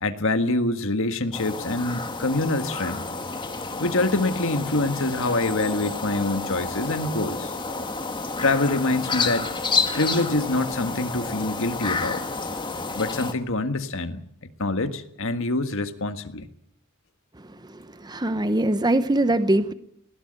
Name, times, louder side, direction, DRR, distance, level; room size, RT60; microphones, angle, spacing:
voice 1, 0.0-3.1 3.8-7.5 8.4-9.5 9.9-12.2 13.0-16.5, left 2 dB, 65° left, 8 dB, 1.6 m, -25 dB
sound 1, 1.3-13.3, left 4 dB, 20° left, 1.8 m, -30 dB
voice 2, 17.4-19.7, right 1 dB, 20° right, 12 dB, 0.8 m, -23 dB
19.5 x 16.5 x 8.9 m, 0.73 s
head